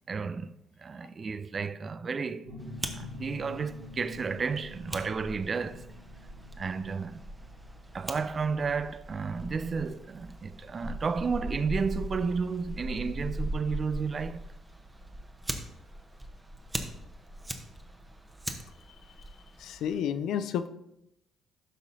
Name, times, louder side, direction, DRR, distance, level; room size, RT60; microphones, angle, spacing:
voice 1, 0.1-5.9 6.6-7.2 7.9-14.4, right 5 dB, 40° right, 0.4 m, -32 dB
sound 1, 2.4-11.8, left 2 dB, 75° right, 3.3 m, -47 dB
Fire, 2.6-20.0, right 1 dB, 15° right, 1.0 m, -40 dB
voice 2, 19.6-20.7, left 8 dB, 65° left, 0.4 m, -30 dB
12.5 x 5.4 x 2.7 m
hypercardioid pair, 50°, 0 cm